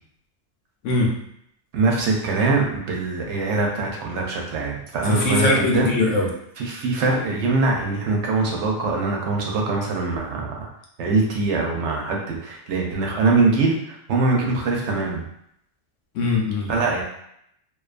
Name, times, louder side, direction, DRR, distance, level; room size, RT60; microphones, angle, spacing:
voice 1, 0.8-1.2 5.1-6.3 16.1-16.7, left 2 dB, 90° left, -1 dB, 1.0 m, -21 dB
voice 2, 1.7-5.9 6.6-10.7 11.0-15.2 16.7-17.0, right 3 dB, 75° right, -1 dB, 0.9 m, -23 dB
2.5 x 2.3 x 2.4 m, 0.73 s
omnidirectional pair, 1.2 m